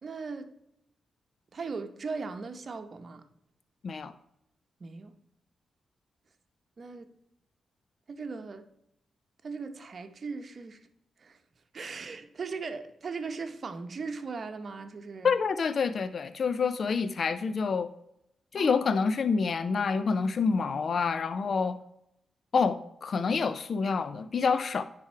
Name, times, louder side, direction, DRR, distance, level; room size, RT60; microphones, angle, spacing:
voice 1, 0.0-0.5 1.5-3.3 4.8-5.1 6.8-7.1 8.1-8.7 9.4-10.8 11.2-11.4 11.7-15.3 18.6-18.9, right 4 dB, 55° right, 8 dB, 0.8 m, -38 dB
voice 2, 15.2-17.9 18.5-21.8 22.5-24.8, left 5 dB, 60° left, 12 dB, 0.4 m, -27 dB
10.0 x 3.5 x 4.6 m, 0.79 s
cardioid pair, 60°, 0 cm